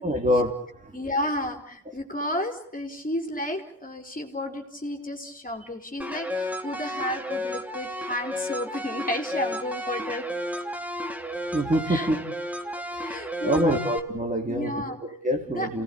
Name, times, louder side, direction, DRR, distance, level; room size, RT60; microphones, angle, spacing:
voice 1, 0.0-0.6 0.8-0.9 11.5-12.2 12.9-13.1 13.4-15.8, equal, 20° right, 3 dB, 4.3 m, -25 dB
voice 2, 0.9-10.3 11.9-12.1 13.0-13.8 14.5-15.0 15.5-15.7, left 1 dB, 20° left, 4 dB, 4.7 m, -32 dB
sound 1, 6.0-14.0, equal, 5° right, 3.1 m, -33 dB
28.0 x 19.0 x 8.7 m, 0.72 s
supercardioid pair, 70°, 41 cm